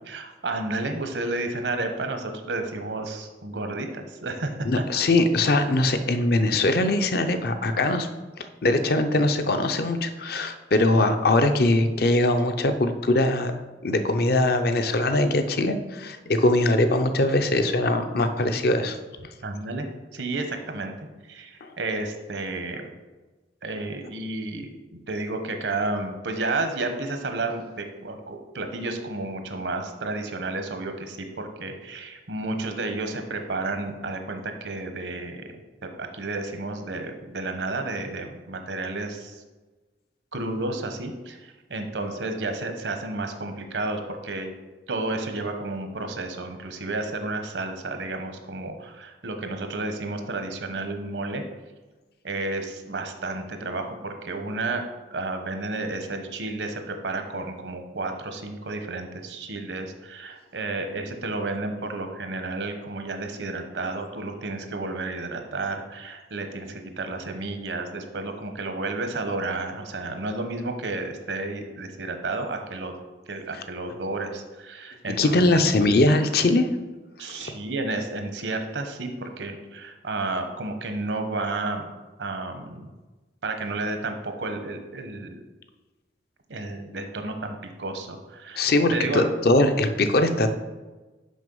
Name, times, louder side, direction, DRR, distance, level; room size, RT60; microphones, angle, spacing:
voice 1, 0.1-4.5 4.9-5.0 19.4-19.9 20.1-20.9 21.2-22.9 23.6-35.4 36.0-39.4 40.3-44.5 44.9-51.4 52.2-54.8 55.1-72.9 73.3-75.7 77.2-81.9 82.2-82.9 83.4-85.4 86.5-89.3, right 2 dB, 75° right, 6 dB, 0.9 m, -31 dB
voice 2, 4.6-8.1 8.4-13.5 13.8-19.0 21.6-21.7 73.5-73.6 75.2-76.7 77.3-77.5 88.6-90.5, left 2 dB, 55° left, 8 dB, 0.6 m, -22 dB
6.3 x 5.4 x 5.4 m, 1.2 s
head